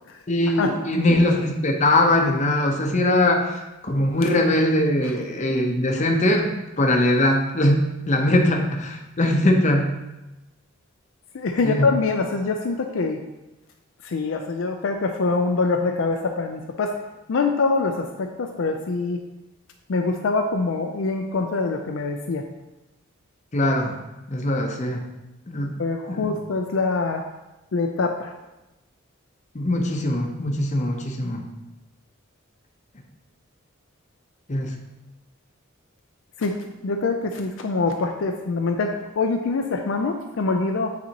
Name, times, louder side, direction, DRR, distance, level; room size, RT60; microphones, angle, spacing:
voice 1, 0.3-9.9 11.6-11.9 23.5-24.0 24.3-25.0 25.5-25.7 26.1-26.3 29.5-31.4 34.5-34.7, left 1 dB, 35° left, 3 dB, 0.7 m, -21 dB
voice 2, 11.3-13.2 14.0-16.9 17.3-19.2 19.9-22.4 25.8-27.2 27.7-28.3 36.4-36.6 36.8-40.9, left 3 dB, 65° left, 4 dB, 0.4 m, -24 dB
8.6 x 4.1 x 2.8 m, 0.99 s
head